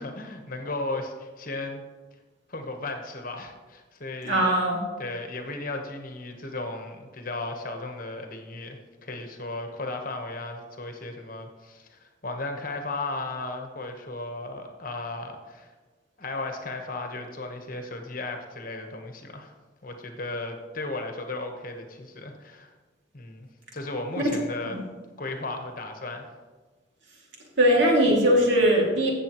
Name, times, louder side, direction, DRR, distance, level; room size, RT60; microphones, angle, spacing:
voice 1, 0.0-1.8 2.5-4.5 5.0-15.7 16.2-19.5 19.8-22.7 23.1-24.7 25.2-26.3, left 2 dB, 45° left, 4 dB, 1.1 m, -35 dB
voice 2, 4.2-4.8 24.2-24.4 24.6-24.8 27.6-29.1, equal, 70° right, -2 dB, 2.4 m, -20 dB
15.0 x 7.1 x 3.0 m, 1.3 s
head